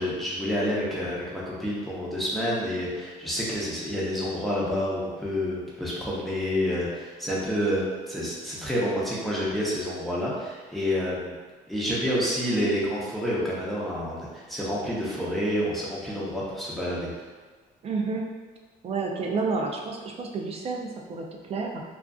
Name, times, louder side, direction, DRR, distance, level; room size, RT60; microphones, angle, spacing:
voice 1, 0.0-11.3 11.7-17.1, equal, ahead, -7 dB, 0.7 m, -28 dB
voice 2, 17.8-18.2 18.8-21.8, right 4 dB, 35° right, 1 dB, 0.4 m, -30 dB
2.4 x 2.4 x 2.3 m, 1.4 s
cardioid pair, 110°, 17 cm